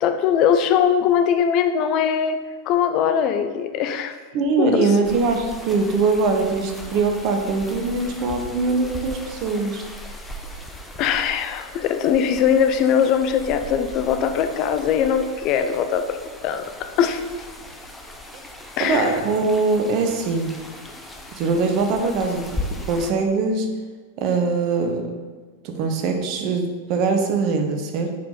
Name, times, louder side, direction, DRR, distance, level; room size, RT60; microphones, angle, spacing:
voice 1, 0.0-2.4 2.7-4.1 4.6-4.9 11.0-16.2 16.4-16.7 17.0-17.2 18.8-19.1, left 8 dB, 40° left, 7 dB, 0.6 m, -21 dB
voice 2, 4.3-9.8 18.8-20.5 21.3-23.7 24.2-25.1 25.6-28.1, right 4 dB, 40° right, 4 dB, 1.0 m, -22 dB
sound 1, 5.0-23.1, left 1 dB, 5° left, 0.8 m, -38 dB
7.1 x 4.9 x 3.9 m, 1.4 s
figure-of-eight pair, 90°, 0 cm